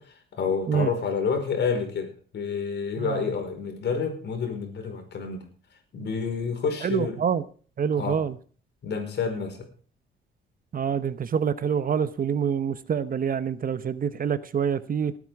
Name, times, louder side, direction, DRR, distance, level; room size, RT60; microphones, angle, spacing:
voice 1, 0.0-5.4 5.9-7.2 7.9-8.2 8.8-9.7, left 5 dB, 60° left, 5 dB, 5.1 m, -29 dB
voice 2, 6.8-7.4 7.8-8.3 10.7-15.1, right 7 dB, 45° right, 14 dB, 1.0 m, -26 dB
19.0 x 9.0 x 4.8 m, 0.40 s
cardioid pair, 90°, 20 cm